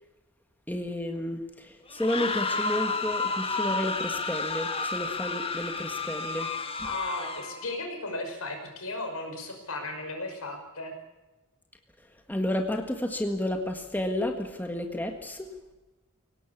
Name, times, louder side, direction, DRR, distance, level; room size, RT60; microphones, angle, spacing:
voice 1, 0.7-6.5 6.8-6.9 12.3-15.5, left 1 dB, 10° left, 4 dB, 1.7 m, -31 dB
sound 1, 1.9-7.7, left 3 dB, 25° left, 1.7 m, -31 dB
voice 2, 6.8-10.9, left 2 dB, 70° left, 4 dB, 5.8 m, -35 dB
23.5 x 18.0 x 8.5 m, 1.1 s
head